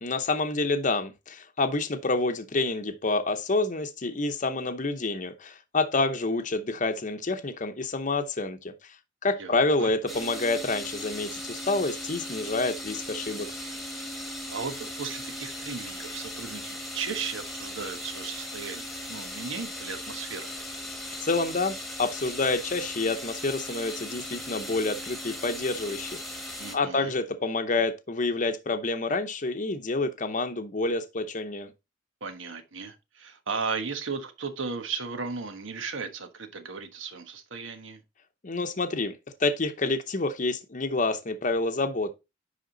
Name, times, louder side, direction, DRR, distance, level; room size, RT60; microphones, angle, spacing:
voice 1, 0.0-9.0 9.2-13.5 21.2-31.7 38.4-42.1, left 3 dB, 40° left, 0.8 m, -28 dB
voice 2, 9.4-9.9 14.5-20.6 26.6-27.1 32.2-38.0, right 5 dB, 85° right, 1.3 m, -36 dB
sound 1, 10.1-26.8, left 1 dB, ahead, 1.4 m, -38 dB
10.5 x 3.6 x 3.9 m
head